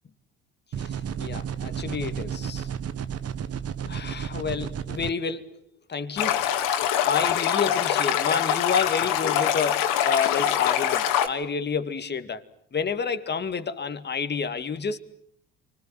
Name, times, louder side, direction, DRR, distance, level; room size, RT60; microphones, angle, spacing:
sound 1, 0.7-5.1, right 8 dB, 40° right, 1.5 m, -32 dB
voice 1, 1.2-2.7 3.9-5.6 5.9-6.4 7.0-12.4 12.7-15.0, left 5 dB, 30° left, 9 dB, 2.2 m, -29 dB
Stream, 6.2-11.3, left 10 dB, 65° left, 2.7 m, -24 dB
28.5 x 25.5 x 7.7 m, 0.70 s
hypercardioid pair, 60°, 36 cm